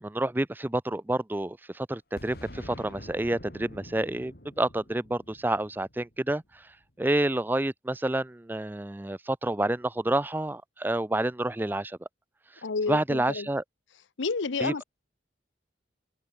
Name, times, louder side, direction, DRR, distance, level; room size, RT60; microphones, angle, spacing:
voice 1, 0.0-6.7 7.0-12.0 12.9-13.6 14.6-14.8, right 1 dB, 10° right, 0.4 m, -29 dB
Boom, 2.2-6.8, equal, 55° left, 6.4 m, -47 dB
voice 2, 12.6-13.5 14.2-14.8, left 4 dB, 85° left, 0.8 m, -30 dB
head